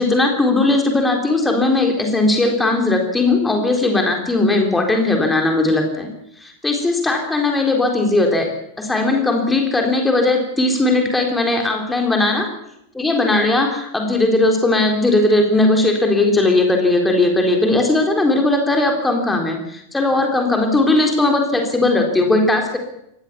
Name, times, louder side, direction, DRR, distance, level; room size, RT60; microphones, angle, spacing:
voice 1, 0.0-6.1 6.4-8.5 8.8-12.5 12.9-22.8, left 2 dB, 10° left, 3 dB, 3.9 m, -18 dB
22.5 x 18.5 x 7.2 m, 0.80 s
figure-of-eight pair, 90°, 0 cm